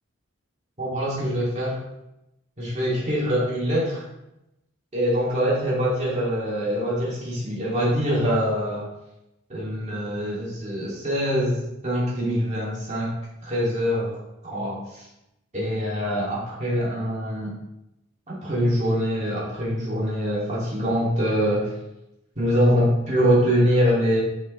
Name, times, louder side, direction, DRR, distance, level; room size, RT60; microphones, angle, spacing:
voice 1, 0.8-1.8 2.6-4.0 4.9-8.9 9.5-13.1 13.4-15.1 15.5-17.5 18.3-21.7 22.4-24.2, equal, 35° right, -7 dB, 2.6 m, -24 dB
7.4 x 6.6 x 3.2 m, 0.89 s
head